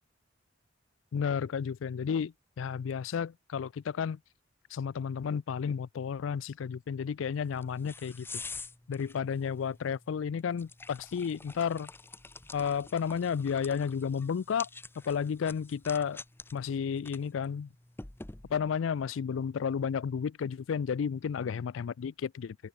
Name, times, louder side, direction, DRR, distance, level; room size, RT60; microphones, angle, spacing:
voice 1, 1.1-4.2 4.7-8.3 8.9-11.9 12.5-14.7 15.1-16.2 16.5-17.7 18.5-22.6, left 7 dB, 80° left, 0.4 m, -32 dB
sound 1, 7.3-18.8, left 3 dB, 10° left, 0.6 m, -48 dB
open air
head